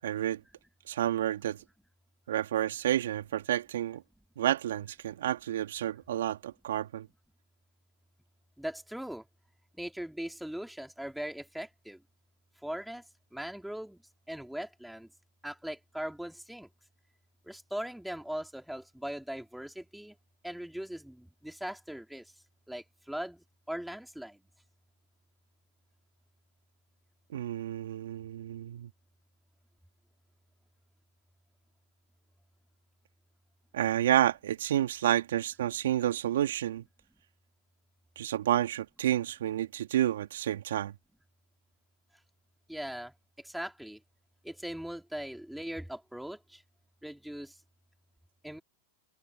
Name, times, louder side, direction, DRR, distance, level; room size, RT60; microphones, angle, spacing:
voice 1, 0.0-0.4 0.9-1.6 2.3-4.0 4.4-7.1 27.3-28.9 33.7-36.8 38.2-40.9, right 12 dB, 75° right, 2.9 m, -30 dB
voice 2, 8.6-9.2 9.7-12.0 12.6-13.1 13.3-14.0 14.3-15.1 15.4-16.7 17.4-20.2 20.4-22.3 22.7-24.4 42.7-44.0 44.4-46.6 47.0-47.6 48.4-48.6, equal, ahead, 4.0 m, -40 dB
hypercardioid pair, 95°, 0 cm